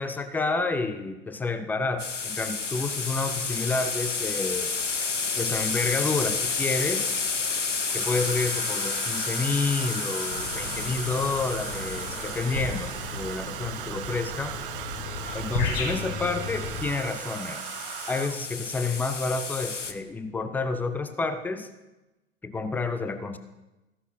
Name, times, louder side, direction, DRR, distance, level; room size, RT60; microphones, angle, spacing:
voice 1, 0.0-4.7 5.4-7.1 7.9-14.5 15.3-17.6 18.1-21.7 22.4-23.4, left 3 dB, 5° left, 10 dB, 0.5 m, -29 dB
sound 1, 2.0-13.5 16.4-19.9, left 5 dB, 90° left, 0.8 m, -31 dB
Domestic sounds home sounds, 7.8-18.6 19.8-20.1 20.4-20.7, right 12 dB, 50° right, 0.5 m, -38 dB
sound 2, 10.3-16.8, left 4 dB, 60° left, 4.1 m, -35 dB
14.5 x 11.0 x 2.7 m, 1.0 s
figure-of-eight pair, 95°, 35 cm